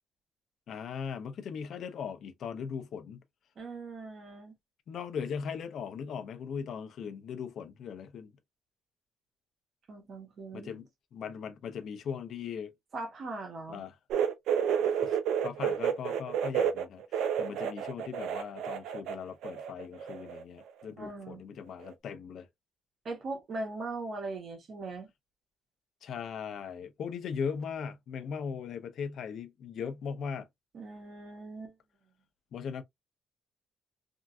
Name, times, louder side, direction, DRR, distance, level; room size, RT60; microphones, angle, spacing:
voice 1, 0.7-3.2 4.9-8.3 10.5-10.9 11.1-12.7 13.7-13.9 14.8-22.5 26.0-30.5 32.5-32.8, left 6 dB, 65° left, 0.6 m, -39 dB
voice 2, 3.6-4.5 9.9-10.8 12.9-13.8 21.0-21.4 23.0-25.1 30.7-31.7, right 3 dB, 55° right, 1.4 m, -40 dB
sound 1, 14.1-19.2 19.4-20.4 20.7-20.8 21.8-21.9, right 8 dB, 85° right, 0.5 m, -30 dB
3.5 x 2.5 x 2.3 m
cardioid pair, 90°, 0 cm